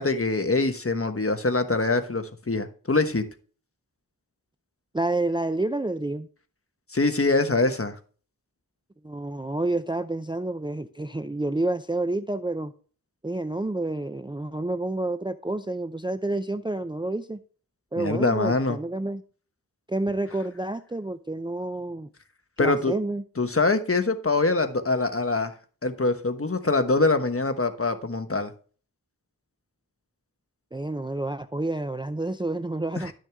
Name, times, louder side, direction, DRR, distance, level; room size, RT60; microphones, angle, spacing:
voice 1, 0.0-3.2 6.9-7.9 18.0-18.8 22.6-22.9 23.4-25.5 25.8-28.5 33.0-33.1, left 3 dB, 35° left, 1.2 m, -24 dB
voice 2, 4.9-6.3 9.0-12.7 13.2-17.4 17.9-19.2 19.9-22.1 22.6-23.2 30.7-33.1, right 2 dB, 15° right, 0.5 m, -29 dB
12.0 x 6.4 x 3.4 m
wide cardioid pair, 50°, 36 cm